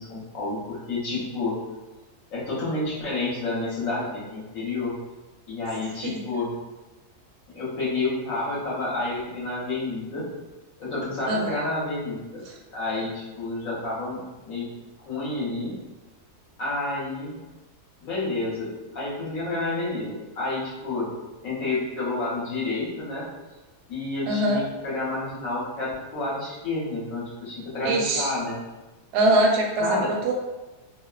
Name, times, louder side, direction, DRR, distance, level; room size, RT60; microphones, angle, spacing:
voice 1, 0.0-1.5 2.3-4.9 5.5-6.5 7.5-10.2 10.8-12.4 12.7-14.7 15.0-15.7 16.6-17.3 18.0-21.1 21.4-23.3 23.9-28.6 29.8-30.1, left 2 dB, 60° left, -6 dB, 1.1 m, -29 dB
voice 2, 24.3-24.6 27.8-28.3 29.1-30.3, right 1 dB, 85° right, 0 dB, 1.1 m, -22 dB
2.8 x 2.0 x 2.2 m, 1.1 s
omnidirectional pair, 1.7 m